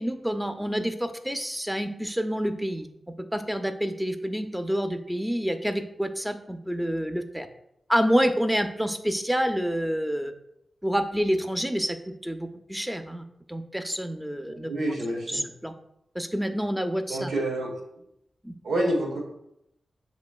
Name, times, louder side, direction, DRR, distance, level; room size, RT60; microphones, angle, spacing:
voice 1, 0.0-2.9 3.2-7.5 7.9-10.3 10.8-14.7 15.3-15.7 16.1-17.3 18.4-18.5, equal, 5° right, 8 dB, 0.6 m, -28 dB
voice 2, 14.6-15.4 17.1-17.7 18.6-19.2, right 1 dB, 90° right, 0 dB, 1.2 m, -27 dB
7.2 x 3.0 x 2.4 m, 0.80 s
cardioid pair, 50°, 0 cm